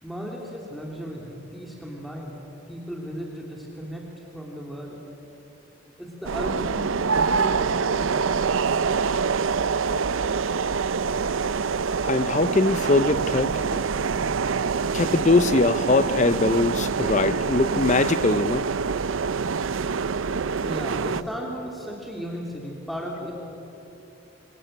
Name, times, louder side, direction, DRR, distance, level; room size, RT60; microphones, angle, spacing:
voice 1, 0.0-4.1 4.3-5.0 6.0-8.3 20.6-23.4, equal, ahead, 2.9 m, -36 dB
sound 1, 6.2-21.2, right 5 dB, 85° right, 0.6 m, -25 dB
voice 2, 12.0-13.8 14.9-18.7, left 3 dB, 35° left, 0.5 m, -22 dB
26.5 x 24.5 x 8.9 m
head